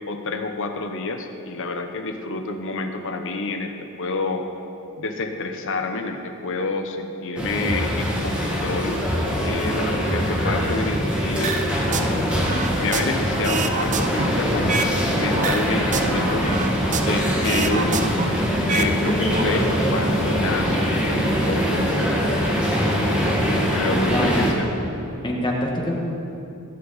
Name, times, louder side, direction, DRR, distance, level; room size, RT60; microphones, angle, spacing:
voice 1, 0.1-4.5 5.0-9.0 9.4-12.3 12.8-14.9 15.1-16.6 17.0-18.3 18.7-22.7 23.6-24.7, left 3 dB, 60° left, 5 dB, 1.0 m, -28 dB
sound 1, 7.4-24.5, equal, 5° right, 2.0 m, -23 dB
sound 2, 11.4-12.1 12.4-15.0 15.3-17.2 17.4-18.9 19.2-19.4, right 4 dB, 35° right, 0.7 m, -27 dB
voice 2, 23.9-24.3 25.2-26.0, left 1 dB, 20° left, -1 dB, 1.6 m, -25 dB
16.5 x 9.8 x 4.2 m, 2.7 s
head